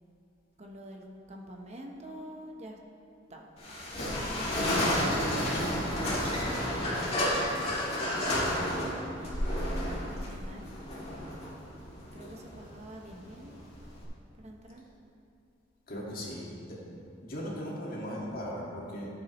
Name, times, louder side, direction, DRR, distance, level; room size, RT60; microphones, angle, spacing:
voice 1, 0.6-2.8 3.3-3.5 3.9-5.2 6.3-7.5 8.2-10.7 12.1-13.6 14.4-14.9, right 1 dB, 35° right, 1 dB, 1.0 m, -47 dB
sound 1, 3.6-14.0, left 1 dB, 35° left, 2.2 m, -31 dB
voice 2, 15.9-16.8 17.2-19.1, equal, 50° left, -5 dB, 2.0 m, -38 dB
13.0 x 7.2 x 3.1 m, 2.5 s
head